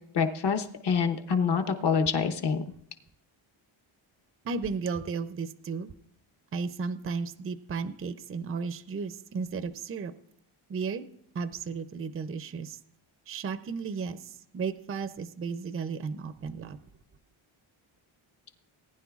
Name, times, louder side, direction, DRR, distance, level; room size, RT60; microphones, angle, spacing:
voice 1, 0.1-2.6, left 6 dB, 55° left, 6 dB, 1.1 m, -26 dB
voice 2, 4.4-5.9 6.5-10.1 10.7-11.1 11.3-12.8 13.3-16.8, right 5 dB, 30° right, 12 dB, 0.5 m, -34 dB
19.0 x 10.0 x 2.4 m, 0.70 s
cardioid pair, 120°, 50 cm